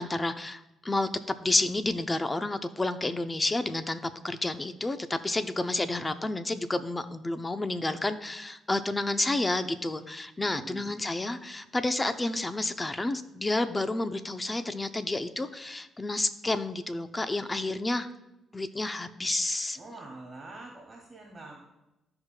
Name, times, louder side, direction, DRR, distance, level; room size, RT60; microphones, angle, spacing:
voice 1, 0.0-4.0 4.2-18.1 18.5-19.8, left 2 dB, 20° left, 10 dB, 0.5 m, -30 dB
voice 2, 10.4-10.9 19.7-21.6, right 2 dB, 30° right, 0 dB, 2.0 m, -45 dB
14.0 x 4.8 x 2.2 m, 0.97 s
cardioid pair, 90°, 0 cm